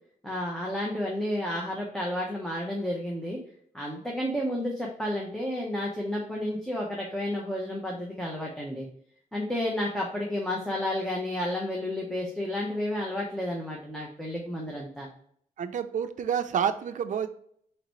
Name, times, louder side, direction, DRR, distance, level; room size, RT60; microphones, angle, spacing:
voice 1, 0.2-3.4 3.7-8.9 9.3-15.1, left 1 dB, 5° left, -3 dB, 0.9 m, -31 dB
voice 2, 15.6-17.3, right 8 dB, 65° right, 8 dB, 0.5 m, -28 dB
4.4 x 3.8 x 3.1 m, 0.64 s
wide cardioid pair, 110°, 14 cm